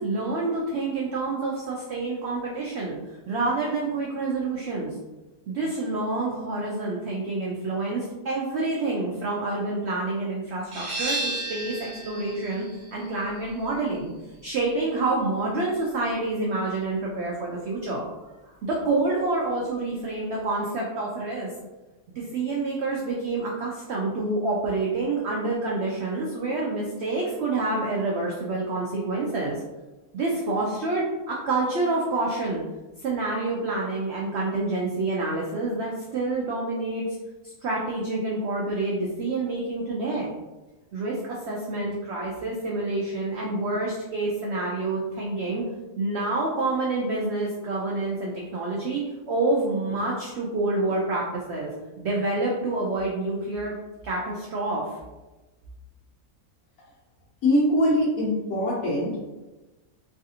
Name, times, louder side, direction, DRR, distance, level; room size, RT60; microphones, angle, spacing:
voice 1, 0.0-3.0 3.3-4.9 5.5-12.6 12.9-14.1 14.4-18.1 18.6-21.5 22.2-29.6 30.1-32.6 33.0-37.0 37.6-40.3 40.9-45.6 46.0-49.0 49.3-51.7 52.0-53.7 54.0-54.8, right 2 dB, 80° right, -3 dB, 0.6 m, -27 dB
sound 1, 10.7-16.1, right 2 dB, 40° right, 0.7 m, -35 dB
voice 2, 57.4-59.2, left 1 dB, 75° left, -7 dB, 1.3 m, -22 dB
3.2 x 2.4 x 2.7 m, 1.1 s
omnidirectional pair, 1.7 m